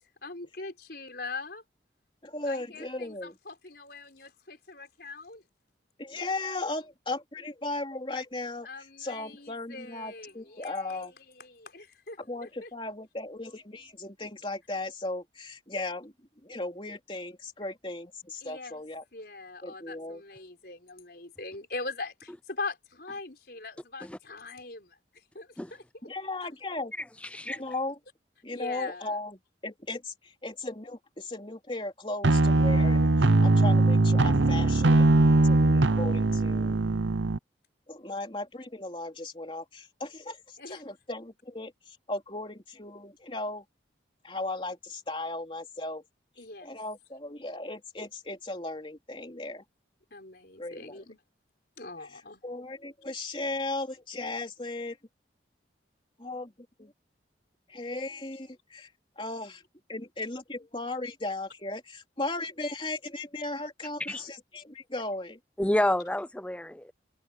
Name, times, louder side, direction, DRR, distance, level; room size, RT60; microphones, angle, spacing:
voice 1, 0.2-1.6 2.4-5.4 8.6-12.7 18.4-18.8 19.1-25.8 28.5-29.2 40.6-40.8 46.4-46.7 50.1-51.2 51.8-52.4, left 3 dB, 55° left, 5.2 m, -41 dB
voice 2, 2.2-3.3 6.0-8.7 9.0-11.1 12.3-16.1 16.4-19.0 19.6-20.2 26.0-26.9 27.5-28.0 28.4-29.4 29.6-35.0 35.4-36.8 37.9-43.6 44.2-46.0 46.6-49.6 50.6-51.0 52.4-55.0 56.2-56.5 56.8-56.9 57.7-58.9 59.2-59.6 59.9-65.4, left 2 dB, 25° left, 3.4 m, -36 dB
sound 1, 32.2-37.4, right 2 dB, 80° right, 0.8 m, -21 dB
voice 3, 65.6-66.9, left 1 dB, 5° left, 0.5 m, -28 dB
head